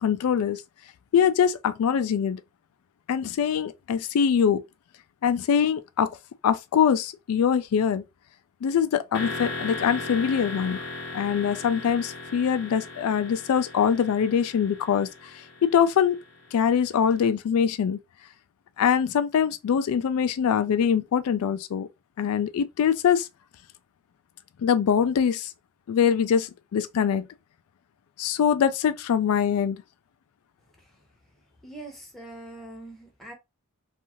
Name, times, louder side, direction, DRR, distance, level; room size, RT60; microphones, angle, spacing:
voice 1, 0.0-0.6 1.1-2.4 3.1-4.6 5.2-6.1 6.4-8.0 8.6-10.8 11.1-16.2 16.5-18.0 18.8-21.9 22.2-23.3 24.6-25.5 25.9-27.3 28.2-29.8, left 7 dB, 85° left, 0.3 m, -23 dB
sound 1, 9.1-16.9, left 2 dB, 55° left, 0.7 m, -37 dB
voice 2, 31.6-33.3, right 2 dB, ahead, 0.7 m, -43 dB
2.6 x 2.4 x 2.9 m
head